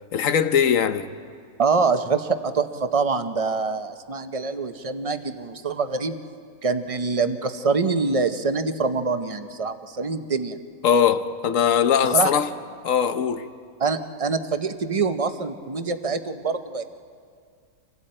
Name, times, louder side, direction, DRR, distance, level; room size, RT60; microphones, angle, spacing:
voice 1, 0.1-1.1 10.8-12.5 12.8-13.5, left 8 dB, 60° left, 1.1 m, -20 dB
voice 2, 1.6-6.2 6.6-10.6 12.1-12.3 13.8-16.8, right 4 dB, 35° right, 0.6 m, -25 dB
29.5 x 24.5 x 4.4 m
omnidirectional pair, 1.6 m